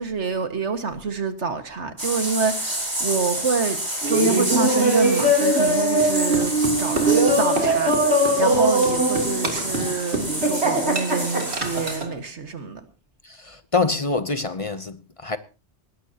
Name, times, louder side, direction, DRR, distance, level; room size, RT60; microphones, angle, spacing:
voice 1, 0.0-3.8 4.1-6.5 6.8-12.8, right 4 dB, 85° right, 2.1 m, -27 dB
sound 1, 2.0-12.0, right 1 dB, 40° right, 6.3 m, -29 dB
Laughter, 4.0-12.1, right 1 dB, 70° right, 3.5 m, -21 dB
voice 2, 13.2-15.4, left 3 dB, 35° left, 0.8 m, -25 dB
19.5 x 18.0 x 2.9 m
omnidirectional pair, 1.1 m